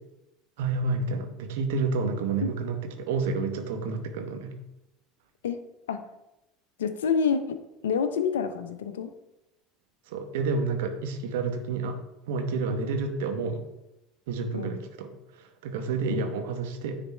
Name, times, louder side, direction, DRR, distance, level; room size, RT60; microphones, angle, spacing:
voice 1, 0.6-4.6 10.1-12.0 12.3-13.6 14.3-17.0, right 4 dB, 70° right, 6 dB, 1.0 m, -30 dB
voice 2, 6.8-7.6 7.8-9.1 14.5-14.7 16.1-16.3, left 6 dB, 75° left, 10 dB, 0.7 m, -27 dB
9.9 x 4.1 x 4.4 m, 0.92 s
hypercardioid pair, 70°, 0 cm